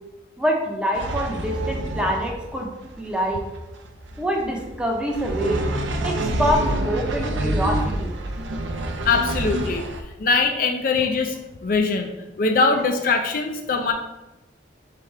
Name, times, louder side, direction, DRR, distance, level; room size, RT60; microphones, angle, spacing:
voice 1, 0.4-2.7 3.0-3.4 4.2-5.6 6.0-8.1, equal, 5° right, -1 dB, 0.6 m, -25 dB
sound 1, 0.9-10.0, right 1 dB, 80° right, 0.5 m, -27 dB
voice 2, 9.0-9.8 10.2-11.4 11.6-12.1 12.4-13.9, left 4 dB, 50° left, 5 dB, 0.4 m, -21 dB
3.7 x 3.3 x 4.4 m, 1.0 s
head